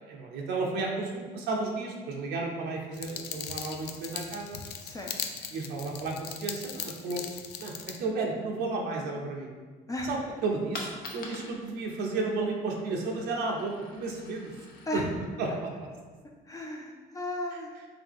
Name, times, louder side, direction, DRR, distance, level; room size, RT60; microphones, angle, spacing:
voice 1, 0.0-4.6 5.5-7.3 7.6-9.5 10.0-14.5 14.9-15.0 15.4-15.5 15.8-15.9, right 3 dB, 85° right, 0 dB, 0.6 m, -33 dB
sound 1, 2.9-8.0, left 8 dB, 80° left, 0.4 m, -39 dB
voice 2, 4.8-5.1 9.9-10.1 14.9-15.1 16.5-17.7, left 1 dB, 20° left, 0 dB, 0.4 m, -34 dB
Coin (dropping), 10.7-16.4, left 2 dB, 60° left, 0.8 m, -47 dB
3.9 x 2.8 x 3.5 m, 1.4 s
cardioid pair, 110°, 17 cm